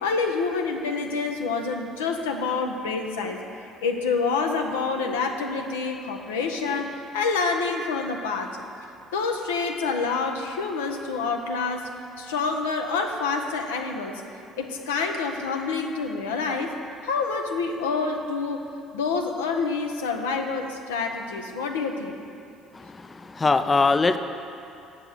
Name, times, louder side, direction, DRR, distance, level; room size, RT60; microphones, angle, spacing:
voice 1, 0.0-3.4 3.8-8.5 9.1-11.9 12.2-14.2 14.6-16.7 17.0-18.7 18.9-22.2, left 4 dB, 85° left, 3 dB, 0.7 m, -27 dB
voice 2, 22.7-24.2, left 3 dB, 25° left, 10 dB, 0.4 m, -22 dB
7.7 x 6.7 x 7.7 m, 2.6 s
hypercardioid pair, 60°, 0 cm